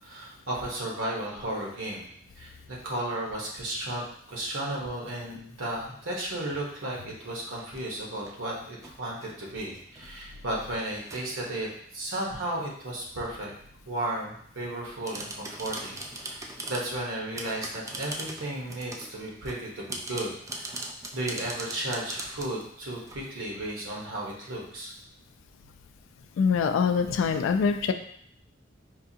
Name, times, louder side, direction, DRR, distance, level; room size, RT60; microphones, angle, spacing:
voice 1, 0.0-2.1 2.4-13.5 13.9-20.8 21.1-24.9, right 1 dB, 85° right, -3 dB, 1.1 m, -34 dB
sound 1, 5.3-5.4 6.2-6.5 7.5-8.4 8.8-9.4 9.7-11.4 14.8-16.9 17.4-19.2 19.5-23.2, right 2 dB, 15° right, 0.3 m, -40 dB
voice 2, 26.4-27.9, left 6 dB, 90° left, 8 dB, 0.3 m, -24 dB
4.5 x 2.5 x 2.7 m, 0.65 s
head